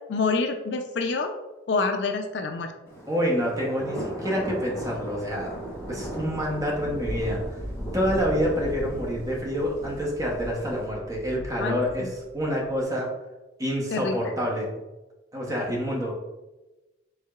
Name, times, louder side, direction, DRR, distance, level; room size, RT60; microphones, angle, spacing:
voice 1, 0.1-1.3 1.7-2.7 11.6-12.1 13.9-14.2, left 4 dB, 60° left, 6 dB, 0.4 m, -27 dB
Thunder, 2.9-12.7, equal, 10° left, 0.9 m, -36 dB
voice 2, 3.1-5.5 5.9-7.4 7.9-13.1 13.6-14.7 15.3-16.1, equal, 20° right, -2 dB, 0.8 m, -27 dB
4.6 x 3.6 x 2.3 m, 1.1 s
head